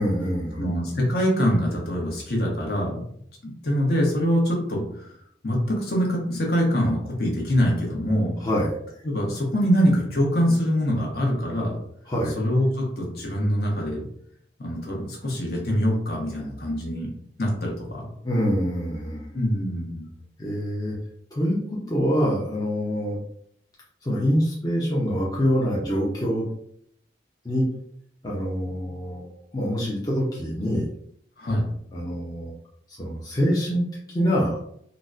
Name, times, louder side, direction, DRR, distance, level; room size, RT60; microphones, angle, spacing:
voice 1, 0.0-0.7 8.4-8.8 12.1-12.4 18.2-19.2 20.4-20.9 21.3-23.2 24.0-26.4 27.4-27.7 28.2-29.3 29.5-30.9 31.9-32.5 32.9-34.6, equal, 20° left, -6 dB, 0.5 m, -25 dB
voice 2, 0.6-3.0 3.4-5.1 5.4-8.3 9.0-11.8 12.3-14.0 14.6-17.1 17.4-18.0 19.3-20.1 31.4-31.6, equal, 60° left, -2 dB, 0.9 m, -24 dB
3.9 x 2.0 x 2.4 m, 0.69 s
head